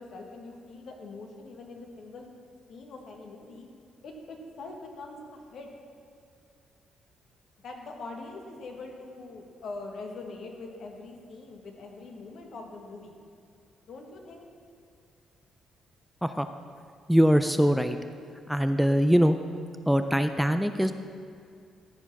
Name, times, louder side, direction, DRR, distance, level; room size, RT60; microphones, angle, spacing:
voice 1, 0.0-2.3 2.7-3.6 4.0-5.7 7.6-13.2 13.9-14.4, left 3 dB, 65° left, 2 dB, 1.6 m, -43 dB
voice 2, 17.1-18.0 18.5-19.4 19.9-20.9, equal, ahead, 8 dB, 0.4 m, -22 dB
14.0 x 4.8 x 6.0 m, 2.4 s
cardioid pair, 90°, 0 cm